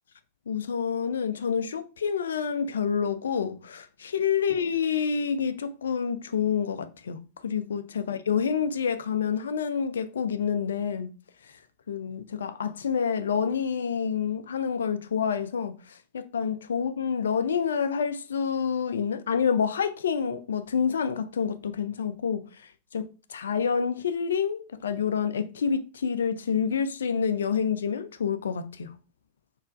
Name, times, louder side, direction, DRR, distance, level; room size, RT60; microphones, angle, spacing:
voice 1, 0.5-11.1 11.9-22.5 22.9-28.9, left 7 dB, 65° left, 0.3 m, -28 dB
4.2 x 3.0 x 2.4 m
figure-of-eight pair, 90°, 0 cm